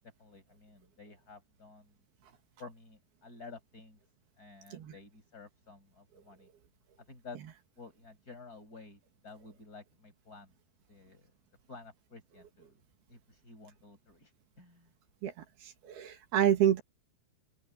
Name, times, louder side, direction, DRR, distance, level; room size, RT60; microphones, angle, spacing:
voice 1, 0.2-1.9 2.6-4.0 4.4-6.5 7.1-7.4 7.8-10.5 10.9-11.3 11.7-12.8 13.1-14.3 14.6-14.9, left 4 dB, 25° left, 6.0 m, -52 dB
voice 2, 15.9-16.8, right 10 dB, 85° right, 4.1 m, -27 dB
open air
omnidirectional pair, 4.3 m